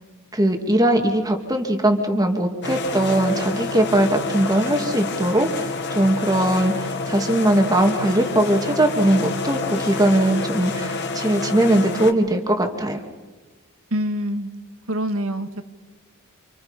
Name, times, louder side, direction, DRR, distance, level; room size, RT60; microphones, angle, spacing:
voice 1, 0.3-13.0, right 1 dB, 15° right, 3 dB, 2.7 m, -20 dB
sound 1, 2.6-12.1, left 3 dB, 55° left, 2.4 m, -28 dB
voice 2, 13.9-14.5 14.9-15.6, equal, 70° right, 7 dB, 2.1 m, -25 dB
28.5 x 28.0 x 5.4 m, 1.3 s
head